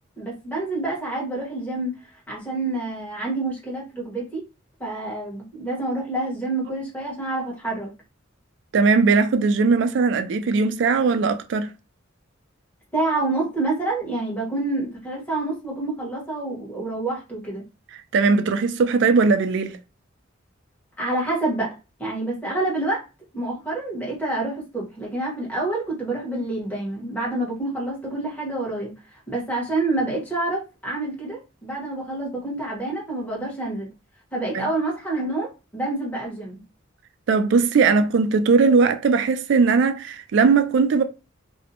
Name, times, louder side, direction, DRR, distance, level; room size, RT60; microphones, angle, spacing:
voice 1, 0.2-1.9 2.3-4.4 4.8-7.9 12.9-17.6 21.0-21.7 22.0-23.0 23.3-28.9 29.3-33.9 34.3-36.6, right 2 dB, 10° left, 1.1 m, -27 dB
voice 2, 8.7-11.7 18.1-19.8 34.5-34.7 37.3-41.0, right 4 dB, 65° right, 0.3 m, -19 dB
2.5 x 2.1 x 2.7 m
head